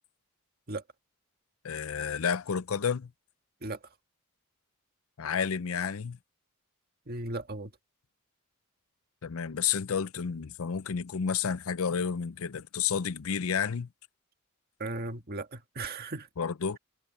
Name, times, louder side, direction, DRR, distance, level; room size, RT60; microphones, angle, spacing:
voice 1, 1.6-3.1 5.2-6.2 9.2-13.9 16.4-16.8, left 7 dB, 75° left, 0.6 m, -31 dB
voice 2, 7.1-7.7 14.8-16.3, right 2 dB, 45° right, 1.6 m, -36 dB
head